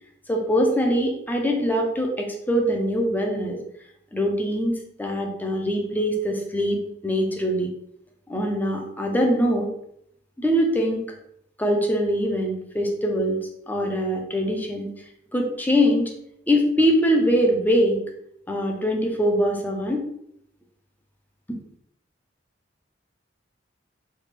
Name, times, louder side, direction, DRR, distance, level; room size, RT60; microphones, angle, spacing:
voice 1, 0.3-3.6 4.1-7.7 8.3-9.7 10.4-11.0 11.6-13.4 13.7-14.9 15.3-16.1 16.5-18.0 18.5-20.0, equal, 10° left, 1 dB, 0.5 m, -23 dB
3.3 x 2.4 x 3.3 m, 0.74 s
head